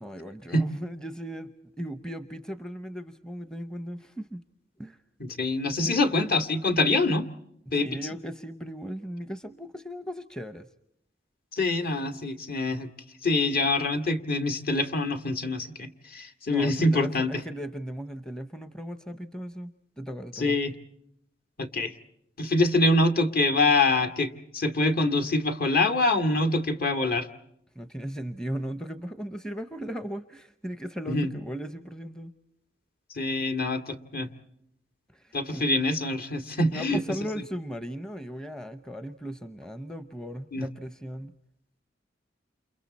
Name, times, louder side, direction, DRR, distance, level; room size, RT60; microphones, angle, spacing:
voice 1, 0.0-1.5 1.8-4.4 4.8-5.0 5.8-6.0 7.7-10.7 16.5-19.7 20.0-20.6 27.8-32.3 35.1-35.6 36.7-41.3, equal, 5° left, 11 dB, 0.8 m, -37 dB
voice 2, 5.2-7.3 7.7-8.0 11.5-12.9 13.2-17.3 20.4-20.7 21.6-21.9 22.4-27.3 31.1-31.3 33.1-34.3 35.3-37.0 40.5-40.7, left 2 dB, 55° left, 6 dB, 2.1 m, -25 dB
29.5 x 29.0 x 4.2 m, 0.75 s
head